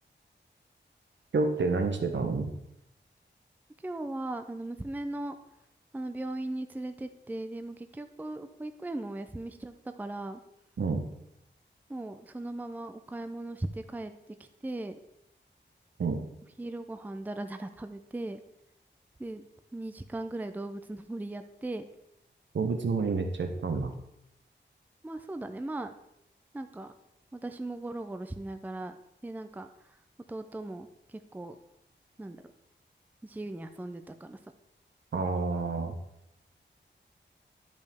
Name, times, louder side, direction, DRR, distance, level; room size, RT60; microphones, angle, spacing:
voice 1, 1.3-2.5 10.8-11.1 16.0-16.2 22.5-23.9 35.1-35.9, right 4 dB, 75° right, 6 dB, 1.0 m, -29 dB
voice 2, 3.8-5.3 5.9-10.4 11.9-14.1 14.4-15.0 16.6-18.4 19.2-19.4 19.7-21.8 25.0-25.9 26.5-26.9 27.3-29.0 29.2-29.7 30.3-31.6 32.2-32.4 33.2-34.4, right 2 dB, 10° right, 9 dB, 0.4 m, -38 dB
11.0 x 5.2 x 3.5 m, 0.83 s
wide cardioid pair, 105°, 19 cm